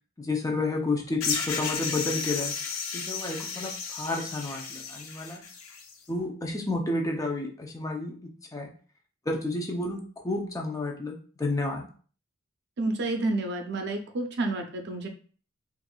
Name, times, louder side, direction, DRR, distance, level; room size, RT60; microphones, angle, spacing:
voice 1, 0.2-2.5 2.9-5.4 6.1-8.7 9.3-11.9, left 2 dB, 15° left, 1 dB, 0.5 m, -31 dB
sound 1, 1.2-5.9, left 5 dB, 80° left, 0.6 m, -33 dB
voice 2, 12.8-15.1, right 2 dB, 55° right, 5 dB, 0.5 m, -29 dB
4.4 x 2.5 x 2.3 m, 0.41 s
head